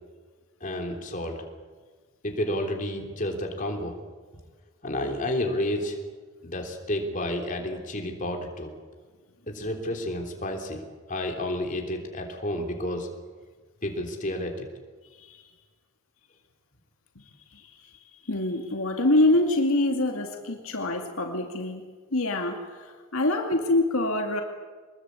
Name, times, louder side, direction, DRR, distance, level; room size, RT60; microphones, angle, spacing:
voice 1, 0.6-1.4 2.2-4.0 4.8-6.0 6.4-8.7 9.5-13.1 13.8-14.7, left 1 dB, 35° left, 2 dB, 3.5 m, -31 dB
voice 2, 15.1-15.4 17.5-17.8 18.2-21.8 22.1-24.4, left 2 dB, 70° left, 3 dB, 2.3 m, -25 dB
24.5 x 21.0 x 8.4 m, 1.4 s
head